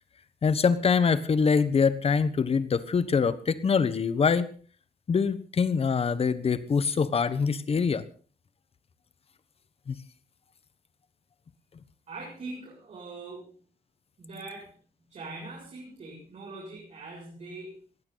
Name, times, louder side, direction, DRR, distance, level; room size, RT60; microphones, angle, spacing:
voice 1, 0.4-4.5 5.1-8.0 9.9-10.0, left 5 dB, 40° left, 14 dB, 1.2 m, -24 dB
voice 2, 12.1-13.5 14.2-14.7 15.1-17.8, right 3 dB, 45° right, -4 dB, 7.2 m, -42 dB
20.0 x 15.5 x 4.1 m, 0.40 s
wide cardioid pair, 150°, 16 cm